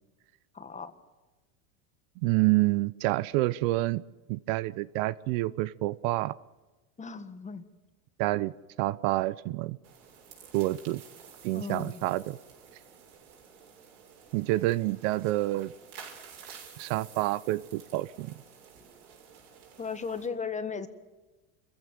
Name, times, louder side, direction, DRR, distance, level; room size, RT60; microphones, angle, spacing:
voice 1, 0.5-0.9 7.0-7.7 11.5-12.0 19.8-20.9, left 5 dB, 15° left, 10 dB, 1.6 m, -36 dB
voice 2, 2.2-4.0 4.3-6.3 8.2-8.5 8.8-9.8 10.5-11.0 11.4-12.4 14.3-15.7 16.8-18.3, right 18 dB, 60° right, 19 dB, 0.8 m, -28 dB
sound 1, 9.8-20.3, right 7 dB, 85° right, 7.1 m, -51 dB
27.5 x 15.5 x 9.1 m, 1.2 s
supercardioid pair, 130°, 43 cm